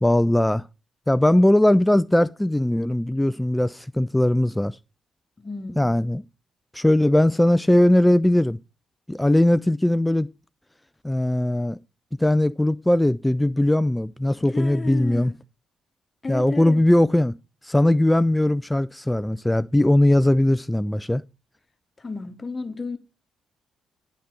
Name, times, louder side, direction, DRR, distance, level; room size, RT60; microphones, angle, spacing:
voice 1, 0.0-0.6 1.1-4.8 5.8-6.2 6.7-8.6 9.1-10.3 11.0-11.8 12.2-15.3 16.3-17.3 17.7-21.2, left 1 dB, 10° left, 0.3 m, -19 dB
voice 2, 5.4-6.0 14.5-15.3 16.2-16.8 22.0-23.0, left 4 dB, 30° left, 1.1 m, -33 dB
9.3 x 4.2 x 5.7 m
hypercardioid pair, 40°, 0 cm